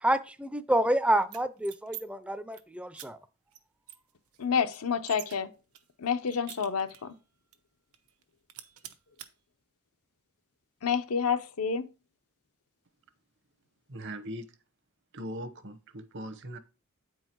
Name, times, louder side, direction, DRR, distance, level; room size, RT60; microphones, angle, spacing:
voice 1, 0.0-3.2, right 1 dB, 5° right, 0.4 m, -28 dB
sound 1, 1.2-2.0 2.3-2.6 2.9-3.1 3.5-3.6 3.9-5.4 5.7-7.2 7.5-7.6 7.9-8.2 8.5-9.3, right 12 dB, 90° right, 0.9 m, -46 dB
voice 2, 4.4-5.5 6.0-7.1 10.8-11.9, left 6 dB, 90° left, 0.7 m, -29 dB
voice 3, 13.9-14.5 15.1-16.6, equal, 55° right, 0.9 m, -40 dB
8.8 x 4.7 x 4.5 m
head